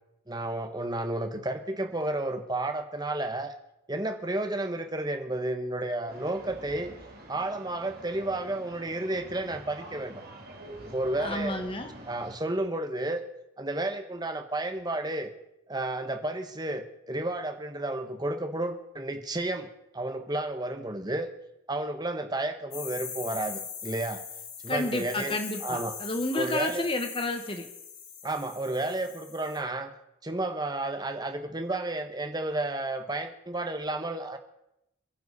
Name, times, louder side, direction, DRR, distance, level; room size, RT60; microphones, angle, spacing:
voice 1, 0.3-3.5 3.9-6.9 7.3-10.2 10.8-11.6 12.1-13.2 13.6-15.3 15.7-19.7 19.9-21.3 21.7-24.2 24.6-25.4 25.6-25.9 26.4-26.8 28.2-29.9 30.2-34.4, right 2 dB, 20° right, 7 dB, 1.2 m, -32 dB
sound 1, 6.1-12.4, right 1 dB, 45° right, 2.3 m, -47 dB
voice 2, 11.2-11.9 24.7-27.7, left 2 dB, 25° left, 6 dB, 1.4 m, -31 dB
sound 2, 22.7-29.6, left 7 dB, 80° left, 6.6 m, -41 dB
27.5 x 10.5 x 4.2 m, 0.85 s
head